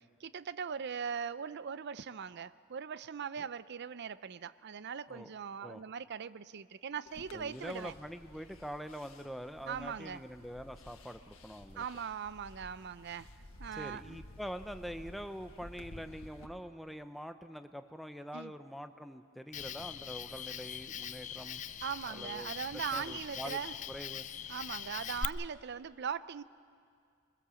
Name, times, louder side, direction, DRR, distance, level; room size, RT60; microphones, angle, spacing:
voice 1, 0.2-7.9 9.7-10.2 11.8-13.3 13.6-14.2 18.3-18.5 21.8-23.7 24.5-26.4, right 7 dB, 55° right, 16 dB, 0.5 m, -40 dB
sound 1, 7.1-16.5, left 1 dB, 75° left, 1.5 m, -54 dB
voice 2, 7.3-11.8 13.7-21.6 22.1-22.5 22.9-23.6 23.9-24.3, equal, ahead, 8 dB, 0.7 m, -44 dB
Cricket, 19.5-25.2, left 8 dB, 35° left, 0.5 m, -42 dB
23.0 x 21.5 x 7.0 m, 2.3 s
head